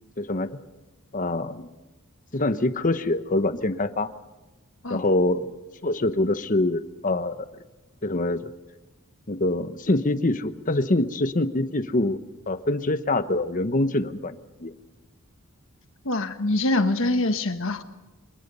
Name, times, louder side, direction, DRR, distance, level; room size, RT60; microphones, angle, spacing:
voice 1, 0.2-0.5 1.1-1.7 2.3-4.1 4.9-7.5 8.0-8.5 9.3-12.2 12.5-14.3 14.6-14.7, left 2 dB, 40° left, 11 dB, 1.0 m, -25 dB
voice 2, 16.0-17.8, left 2 dB, 65° left, 8 dB, 1.5 m, -24 dB
27.5 x 23.0 x 5.5 m, 1.1 s
head